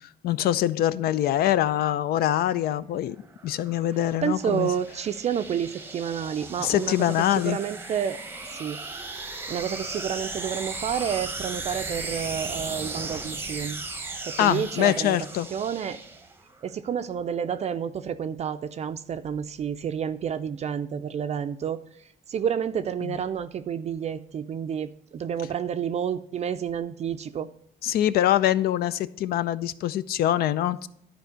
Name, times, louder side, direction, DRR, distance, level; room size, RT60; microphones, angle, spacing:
voice 1, 0.2-3.2 3.4-4.7 6.6-7.6 14.4-15.5 23.0-23.1 27.8-30.9, left 12 dB, 65° left, 16 dB, 0.5 m, -24 dB
sound 1, 3.1-16.6, right 3 dB, 15° right, 0.8 m, -37 dB
voice 2, 4.2-6.9 7.3-8.2 8.5-8.8 9.5-13.8 14.2-15.2 15.5-16.0 16.6-21.8 22.3-27.5, right 8 dB, 40° right, 10 dB, 0.4 m, -29 dB
11.0 x 4.5 x 5.1 m, 0.71 s
cardioid pair, 110°, 17 cm